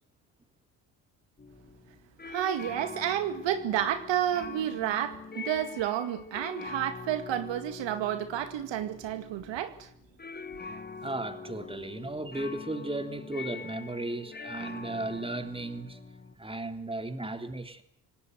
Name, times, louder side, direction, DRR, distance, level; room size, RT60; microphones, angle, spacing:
sound 1, 1.4-16.4, left 4 dB, 20° left, 2.3 m, -44 dB
voice 1, 2.3-9.9, right 11 dB, 60° right, 2.1 m, -30 dB
voice 2, 11.0-16.0 16.4-17.8, right 2 dB, 10° right, 3.4 m, -35 dB
26.5 x 18.5 x 8.0 m
hypercardioid pair, 60°, 49 cm